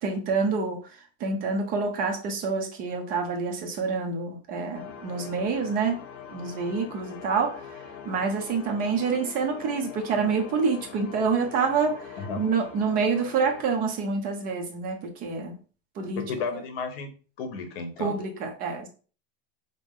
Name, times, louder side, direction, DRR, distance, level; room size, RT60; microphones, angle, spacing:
voice 1, 0.0-0.8 1.2-6.0 6.3-7.8 8.0-15.6 16.0-16.2 16.5-16.6 18.0-18.9, right 5 dB, 25° right, 2 dB, 0.6 m, -27 dB
sound 1, 4.7-13.6, left 7 dB, 30° left, 0.4 m, -43 dB
voice 2, 16.2-17.1 17.4-18.2, left 4 dB, 65° left, 7 dB, 1.0 m, -33 dB
5.3 x 2.0 x 3.6 m, 0.38 s
supercardioid pair, 170°, 32 cm